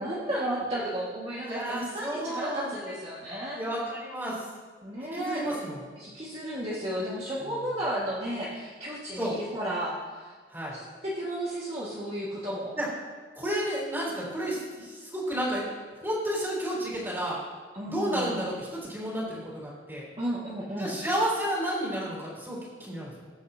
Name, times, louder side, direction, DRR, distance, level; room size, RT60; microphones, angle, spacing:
voice 1, 0.0-3.6 4.8-5.6 6.0-10.3 10.7-12.7 17.7-18.4 20.2-20.9, right 1 dB, 35° right, -8 dB, 2.0 m, -33 dB
voice 2, 1.4-2.7 3.5-4.4 5.1-5.8 9.2-9.3 10.5-10.8 12.8-12.9 13.3-15.6 16.0-17.4 17.9-20.1 20.8-23.2, right 1 dB, 10° right, -5 dB, 4.0 m, -31 dB
21.5 x 10.0 x 2.9 m, 1.5 s
head